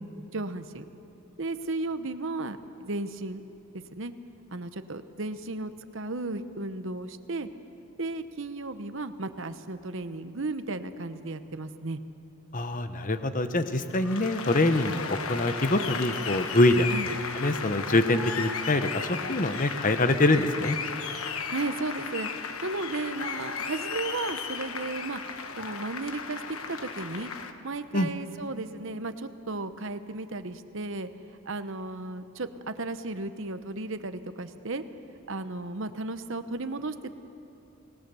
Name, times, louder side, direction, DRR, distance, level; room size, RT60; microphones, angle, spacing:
voice 1, 0.3-0.8 1.4-3.4 3.9-4.1 4.5-7.5 8.0-12.0 16.9-17.1 21.5-22.3 22.6-25.2 25.6-26.4 26.7-27.3 27.6-34.8 35.3-37.1, right 2 dB, 55° right, 10 dB, 1.0 m, -34 dB
voice 2, 12.5-20.8 27.9-28.1, left 2 dB, 35° left, 9 dB, 0.9 m, -25 dB
Applause, 13.9-27.5, left 5 dB, 70° left, 1.2 m, -35 dB
26.5 x 19.0 x 7.0 m, 2.8 s
head